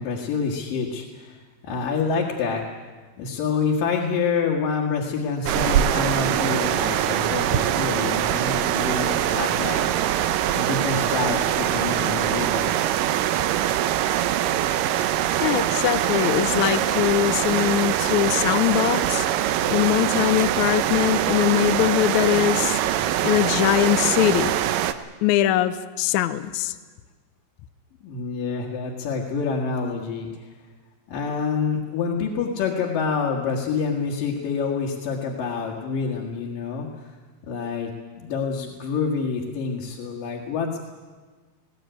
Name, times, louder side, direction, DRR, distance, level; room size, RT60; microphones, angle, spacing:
voice 1, 0.0-2.8 3.2-9.8 10.5-12.8 28.0-30.5 31.1-37.1 37.4-37.9 38.2-40.8, left 5 dB, 90° left, -1 dB, 3.5 m, -27 dB
sound 1, 5.5-24.9, right 11 dB, 90° right, 2.5 m, -23 dB
voice 2, 15.4-19.3 19.7-24.5 25.2-26.7, left 13 dB, 70° left, 11 dB, 2.0 m, -22 dB
20.5 x 18.0 x 9.2 m, 1.4 s
omnidirectional pair, 3.8 m